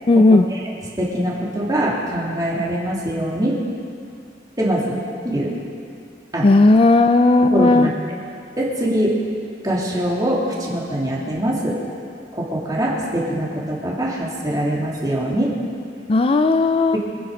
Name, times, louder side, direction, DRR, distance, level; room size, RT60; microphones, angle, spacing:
voice 1, 0.1-0.4 6.4-7.9 16.1-17.0, left 2 dB, 30° left, 8 dB, 0.4 m, -14 dB
voice 2, 1.0-3.6 4.6-5.5 6.3-6.5 7.4-7.9 8.6-9.2 9.6-11.8 12.3-15.5 16.9-17.0, right 1 dB, 20° right, -5 dB, 3.1 m, -23 dB
26.0 x 10.0 x 5.0 m, 2.4 s
head